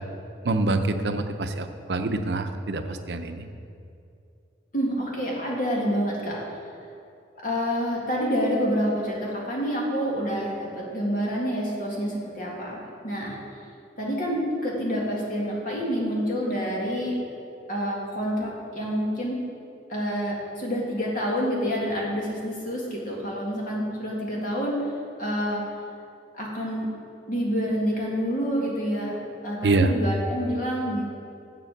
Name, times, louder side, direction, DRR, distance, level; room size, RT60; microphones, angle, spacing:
voice 1, 0.4-3.5 29.6-29.9, right 2 dB, 75° right, 8 dB, 0.6 m, -25 dB
voice 2, 4.7-6.4 7.4-13.4 14.0-17.2 17.7-19.4 19.9-24.8 25.2-25.6 26.3-26.9 27.3-29.2 29.4-31.0, equal, 50° left, -3 dB, 2.2 m, -27 dB
8.0 x 7.6 x 6.6 m, 2.5 s
head